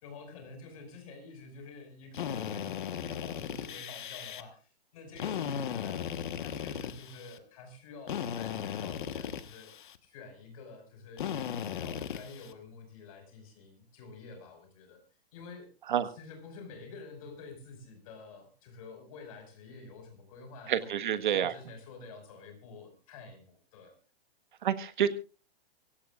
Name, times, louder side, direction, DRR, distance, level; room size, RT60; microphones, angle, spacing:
voice 1, 0.0-6.0 6.4-9.7 10.0-15.0 15.3-15.7 16.2-23.9, left 4 dB, 35° left, 5 dB, 5.4 m, -49 dB
Drill, 2.1-4.4 5.2-7.4 8.1-10.0 11.2-12.5, left 9 dB, 50° left, 1.3 m, -37 dB
voice 2, 20.7-21.5 24.6-25.1, right 9 dB, 50° right, 11 dB, 1.5 m, -28 dB
25.0 x 16.5 x 2.5 m, 0.34 s
hypercardioid pair, 175°, 31 cm